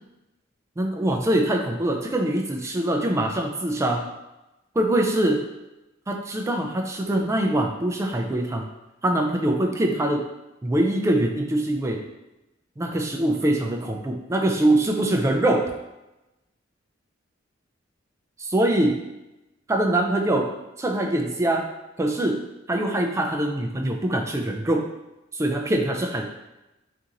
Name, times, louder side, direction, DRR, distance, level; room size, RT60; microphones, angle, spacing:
voice 1, 0.8-4.1 4.8-5.5 6.1-8.7 9.0-10.3 10.6-12.0 12.8-15.7 18.4-19.0 19.7-21.7 22.0-24.9 25.3-26.3, right 1 dB, 15° right, 2 dB, 0.3 m, -23 dB
2.9 x 2.6 x 3.7 m, 0.97 s
head